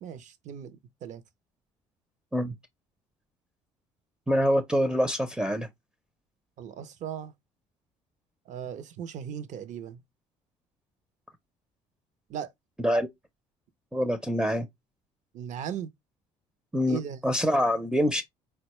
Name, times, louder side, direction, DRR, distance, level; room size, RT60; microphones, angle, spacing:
voice 1, 0.0-1.2 6.6-7.3 8.5-10.0 12.3-12.5 15.3-15.9 16.9-17.2, right 9 dB, 60° right, 0.6 m, -37 dB
voice 2, 4.3-5.7 12.8-13.1 13.9-14.7 16.7-18.2, equal, 5° right, 0.5 m, -25 dB
4.0 x 2.2 x 2.9 m
supercardioid pair, 70°, 14 cm